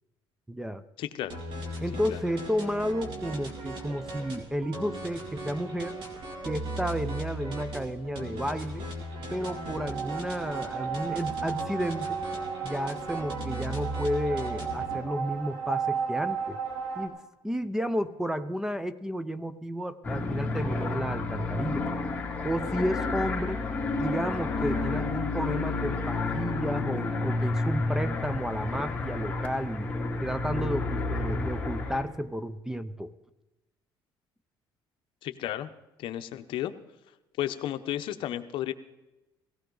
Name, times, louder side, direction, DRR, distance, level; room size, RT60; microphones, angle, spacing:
voice 1, 0.5-0.8 1.8-6.0 6.5-8.9 9.3-12.2 12.6-16.6 17.0-17.2 17.4-21.9 22.4-23.6 24.0-29.9 30.2-33.1, equal, 5° right, 14 dB, 0.5 m, -32 dB
voice 2, 1.0-1.4 2.1-2.2 35.2-35.7 36.0-36.7 37.4-38.7, left 12 dB, 65° left, 10 dB, 0.8 m, -33 dB
sound 1, 1.3-15.0, right 1 dB, 65° right, 2.7 m, -38 dB
sound 2, 9.0-17.1, right 6 dB, 85° right, 3.3 m, -34 dB
sound 3, 20.0-32.0, left 3 dB, 15° left, 3.0 m, -30 dB
17.5 x 16.5 x 3.9 m, 1.0 s
cardioid pair, 130°, 9 cm